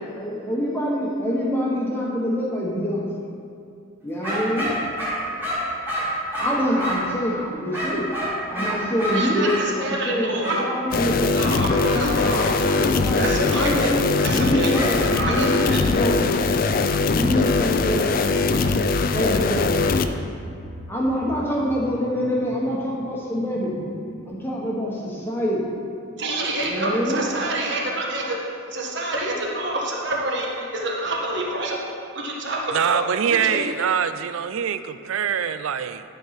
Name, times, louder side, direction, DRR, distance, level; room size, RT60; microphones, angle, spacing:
voice 1, 0.1-3.1 4.0-4.7 6.4-8.1 8.5-11.5 12.6-14.1 14.3-15.0 15.3-16.2 17.1-18.1 19.1-19.7 20.9-23.8 24.3-25.7 26.6-27.2, equal, 10° left, -4 dB, 1.2 m, -25 dB
sound 1, 4.2-7.1 7.7-9.7 10.4-10.6 14.7-15.4, equal, 10° right, 2.2 m, -27 dB
voice 2, 9.1-9.5 9.8-10.6 11.3-12.6 13.1-13.9 14.2-14.9 15.2-15.8 26.2-28.4 28.7-31.8 32.1-33.0 33.3-33.6, right 2 dB, 55° right, -2 dB, 1.4 m, -27 dB
sound 2, 10.9-20.1, left 3 dB, 45° left, 0.4 m, -21 dB
sound 3, 17.7-25.4, left 1 dB, 60° left, 0.8 m, -40 dB
voice 3, 32.7-36.0, right 7 dB, 80° right, 12 dB, 0.4 m, -24 dB
11.5 x 4.6 x 5.8 m, 2.5 s
head